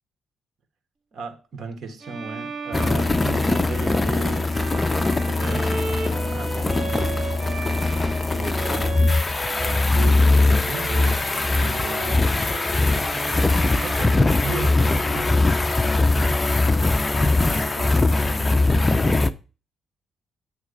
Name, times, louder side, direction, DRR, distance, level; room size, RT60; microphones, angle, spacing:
voice 1, 1.1-6.8 8.1-9.0 9.5-13.5 13.8-16.7 17.4-19.1, right 4 dB, 55° right, 1.6 m, -37 dB
Bowed string instrument, 2.0-9.9 10.2-14.9, right 4 dB, 30° right, 1.2 m, -35 dB
sound 1, 2.7-19.3, left 2 dB, 20° left, 0.5 m, -21 dB
9.5 x 3.3 x 6.5 m
cardioid pair, 90°, 0 cm